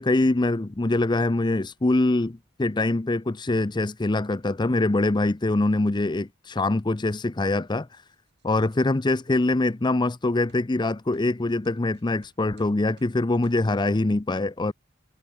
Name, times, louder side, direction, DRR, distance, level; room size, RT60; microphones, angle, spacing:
voice 1, 0.0-8.0 8.4-14.7, left 2 dB, 25° left, 0.6 m, -24 dB
sound 1, 7.9-8.8 9.5-9.6 10.5-10.7 11.1-11.3 11.6-13.2 13.4-13.6, right 2 dB, 60° right, 5.5 m, -59 dB
head